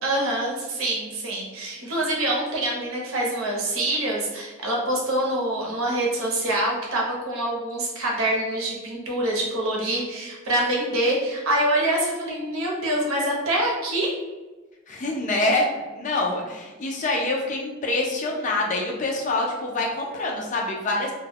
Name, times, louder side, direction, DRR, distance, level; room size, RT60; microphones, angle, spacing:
voice 1, 0.0-14.1, right 1 dB, 90° right, -2 dB, 0.8 m, -25 dB
voice 2, 14.9-15.7 15.9-21.1, left 2 dB, 35° left, -1 dB, 0.4 m, -25 dB
2.2 x 2.2 x 3.4 m, 1.2 s
head